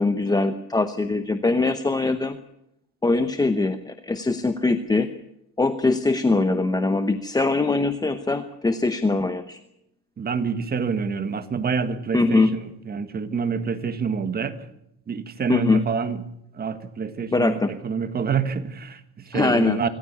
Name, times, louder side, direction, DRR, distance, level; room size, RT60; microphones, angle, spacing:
voice 1, 0.0-2.4 3.0-5.1 5.6-9.6 12.1-12.5 15.5-15.8 17.3-17.7 19.3-19.8, left 3 dB, 10° left, 10 dB, 0.8 m, -22 dB
voice 2, 10.2-12.5 12.9-14.6 15.1-16.2 16.5-19.9, right 6 dB, 25° right, 10 dB, 1.8 m, -27 dB
25.5 x 15.0 x 8.3 m, 0.80 s
cardioid pair, 155°, 38 cm